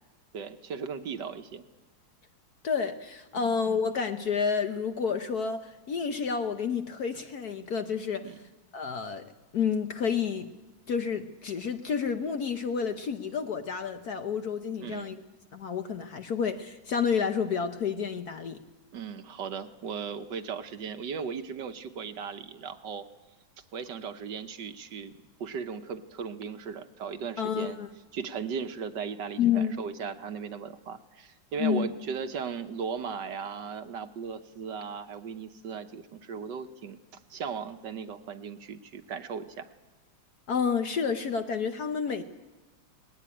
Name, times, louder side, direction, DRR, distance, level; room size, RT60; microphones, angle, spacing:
voice 1, 0.3-1.6 3.4-3.5 8.2-8.4 14.8-15.2 18.9-23.1 23.7-27.8 28.1-37.0 37.3-39.7, right 6 dB, 60° right, 9 dB, 1.4 m, -37 dB
voice 2, 2.6-8.4 8.7-9.3 9.5-10.5 10.9-15.2 15.5-18.6 27.4-27.9 29.4-29.7 31.6-31.9 40.5-42.2, left 6 dB, 60° left, 8 dB, 1.2 m, -30 dB
19.0 x 17.5 x 9.8 m, 1.1 s
omnidirectional pair, 2.4 m